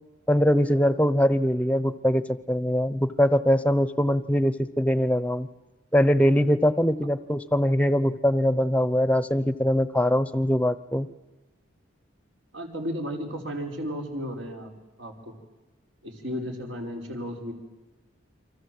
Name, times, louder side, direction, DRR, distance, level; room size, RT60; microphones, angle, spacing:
voice 1, 0.3-5.5 5.9-11.1, equal, 5° left, 13 dB, 0.8 m, -22 dB
voice 2, 12.5-14.7 15.0-15.3 16.0-17.5, equal, 75° right, 2 dB, 5.2 m, -34 dB
29.5 x 25.0 x 7.9 m, 1.1 s
head